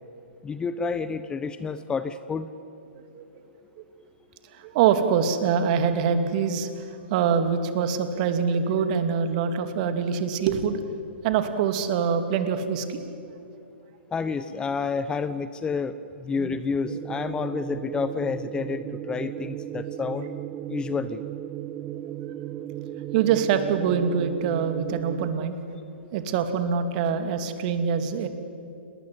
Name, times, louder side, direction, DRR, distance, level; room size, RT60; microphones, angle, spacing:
voice 1, 0.4-2.5 14.1-20.3 20.7-21.2, left 5 dB, 15° left, 13 dB, 0.9 m, -29 dB
voice 2, 2.9-3.4 3.8-3.9 4.5-10.8 11.2-13.0 16.3-16.5 23.1-25.7 26.1-28.3, right 7 dB, 45° right, 8 dB, 2.8 m, -25 dB
sound 1, 16.8-25.3, right 12 dB, 25° right, 1.0 m, -35 dB
29.5 x 20.0 x 9.5 m, 2.7 s
figure-of-eight pair, 120°, 6 cm